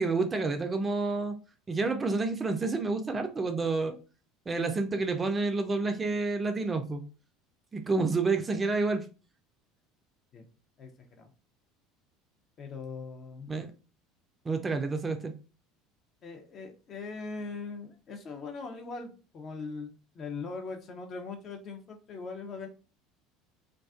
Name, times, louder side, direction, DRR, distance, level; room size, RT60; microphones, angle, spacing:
voice 1, 0.0-1.4 1.7-4.0 4.5-7.0 7.7-9.1 13.5-13.7 14.5-15.3, right 3 dB, 25° right, 0.4 m, -29 dB
voice 2, 12.6-13.5 16.2-22.7, left 4 dB, 40° left, 0.5 m, -40 dB
2.4 x 2.3 x 2.3 m
hypercardioid pair, 70°, 0 cm